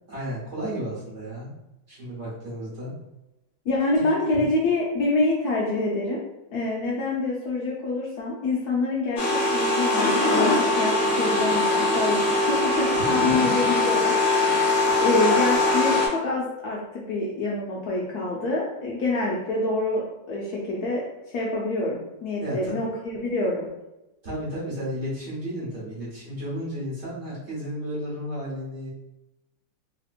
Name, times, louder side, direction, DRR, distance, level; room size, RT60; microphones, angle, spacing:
voice 1, 0.1-1.5 1.9-2.9 3.9-4.0 4.3-4.4 13.0-13.4 14.9-15.0 22.4-22.7 24.2-28.9, equal, 45° right, -8 dB, 1.2 m, -33 dB
voice 2, 3.7-6.2 6.5-23.7, left 2 dB, 70° left, -4 dB, 0.9 m, -26 dB
sound 1, 9.2-16.1, left 2 dB, 45° left, 1.0 m, -22 dB
3.2 x 2.8 x 2.4 m, 0.94 s
omnidirectional pair, 2.0 m